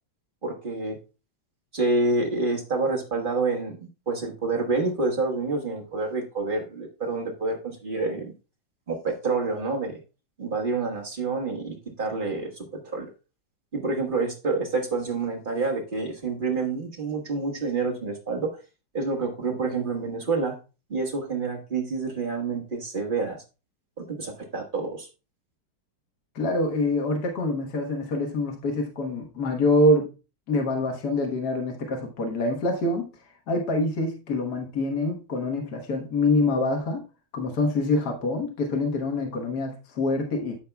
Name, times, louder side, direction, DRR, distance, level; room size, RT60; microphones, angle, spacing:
voice 1, 0.4-1.0 1.7-3.8 4.1-8.3 8.9-10.0 10.4-13.1 13.7-18.6 18.9-20.6 20.9-23.4 24.0-25.1, right 3 dB, 25° right, 1 dB, 1.5 m, -28 dB
voice 2, 26.3-30.1 30.5-33.0 33.5-37.0 37.3-40.6, left 2 dB, 55° left, 2 dB, 1.7 m, -25 dB
14.0 x 4.7 x 2.2 m, 0.31 s
omnidirectional pair, 2.2 m